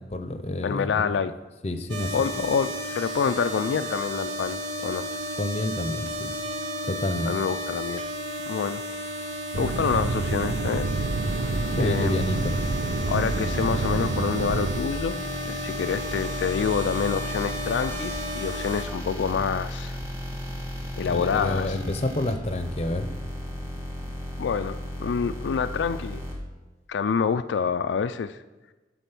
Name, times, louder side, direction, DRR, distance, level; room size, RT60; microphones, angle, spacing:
voice 1, 0.1-1.2 1.6-2.3 5.4-6.3 6.9-7.3 11.8-12.6 21.0-23.1, left 1 dB, 35° left, 8 dB, 0.7 m, -29 dB
voice 2, 0.6-1.3 2.1-5.1 7.2-8.0 8.5-8.8 9.5-10.9 11.8-12.2 13.1-15.2 15.5-20.0 21.0-21.8 24.4-26.2 26.9-28.4, left 6 dB, 85° left, 10 dB, 0.4 m, -27 dB
sound 1, 1.9-18.8, equal, 85° right, 1.4 m, -33 dB
sound 2, 9.5-14.8, right 3 dB, 60° right, 0.5 m, -28 dB
sound 3, 11.2-26.3, left 1 dB, 15° right, 1.6 m, -35 dB
12.0 x 4.1 x 6.0 m, 1.2 s
head